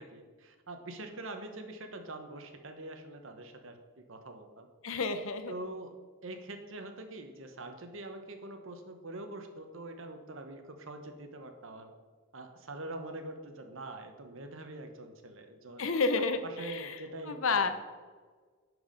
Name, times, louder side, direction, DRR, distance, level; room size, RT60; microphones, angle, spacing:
voice 1, 0.0-4.7 5.5-5.9 6.2-11.9 12.3-15.8 16.4-17.7, right 2 dB, 65° right, 6 dB, 1.0 m, -44 dB
voice 2, 4.8-5.5 15.8-17.0 17.3-17.7, left 4 dB, 70° left, 9 dB, 0.8 m, -30 dB
10.5 x 4.7 x 5.1 m, 1.5 s
head